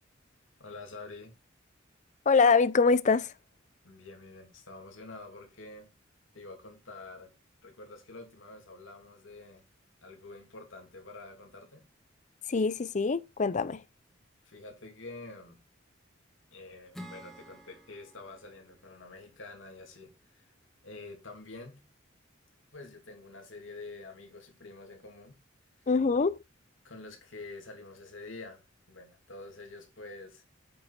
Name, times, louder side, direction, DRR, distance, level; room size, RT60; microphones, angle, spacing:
voice 1, 0.6-1.3 3.8-5.9 6.3-7.3 7.6-9.6 10.0-11.9 14.4-15.6 16.5-20.5 20.8-21.8 22.7-25.4 26.8-28.6 28.9-30.4, left 3 dB, 75° left, 2.8 m, -47 dB
voice 2, 2.3-3.3 12.5-13.8 25.9-26.4, left 4 dB, 40° left, 0.5 m, -24 dB
Acoustic guitar / Strum, 16.9-20.4, equal, ahead, 1.7 m, -51 dB
8.6 x 5.3 x 4.2 m
head